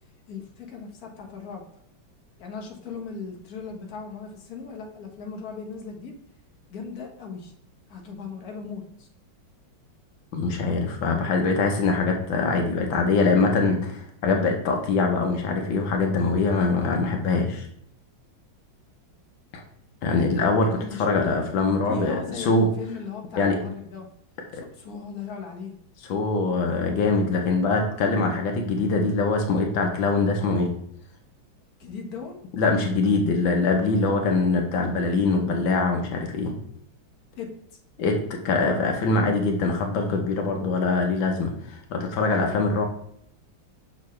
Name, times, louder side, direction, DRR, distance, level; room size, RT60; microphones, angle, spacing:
voice 1, 0.3-1.6 2.4-6.1 6.7-7.5 7.9-9.1 20.7-21.4 21.9-24.1 24.5-25.7 31.8-32.4 37.4-37.5, left 5 dB, 55° left, 1 dB, 1.7 m, -37 dB
voice 2, 10.3-17.7 19.5-19.6 20.0-20.7 21.0-22.7 23.4-23.5 24.5-24.6 26.1-30.7 32.6-36.5 38.0-38.1 38.4-42.8, left 3 dB, 80° left, 3 dB, 1.7 m, -23 dB
6.6 x 6.3 x 3.2 m, 0.70 s
omnidirectional pair, 2.1 m